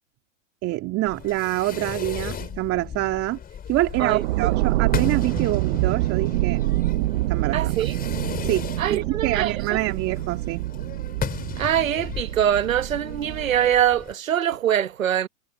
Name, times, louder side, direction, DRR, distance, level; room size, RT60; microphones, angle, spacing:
voice 1, 0.6-3.4 3.7-6.6 7.3-7.8 8.4-11.0, right 17 dB, 35° right, 2.5 m, -26 dB
Fireworks, 1.1-14.1, left 8 dB, 20° left, 4.6 m, -36 dB
sound 1, 3.9-13.7, right 18 dB, 65° right, 0.5 m, -26 dB
voice 2, 7.5-7.9 8.8-9.5 11.6-15.3, right 10 dB, 90° right, 1.3 m, -23 dB
hypercardioid pair, 120°, 39 cm